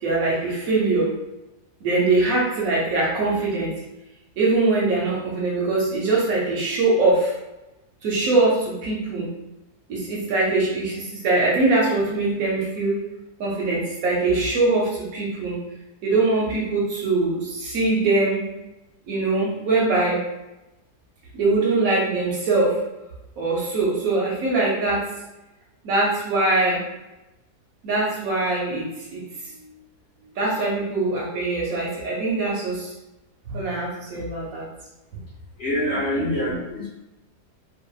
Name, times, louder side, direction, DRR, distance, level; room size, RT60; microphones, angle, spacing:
voice 1, 0.0-1.1 1.8-3.8 4.4-7.3 8.0-9.3 9.9-13.0 13.4-15.6 16.0-18.4 19.1-20.2 21.3-22.8 23.4-25.1 25.8-26.8 27.8-29.2 30.4-32.9 33.5-34.7 36.1-36.5, right 3 dB, 70° right, -4 dB, 1.0 m, -22 dB
voice 2, 35.6-36.9, left 1 dB, 60° left, -8 dB, 0.8 m, -25 dB
2.6 x 2.2 x 2.2 m, 0.97 s
omnidirectional pair, 1.7 m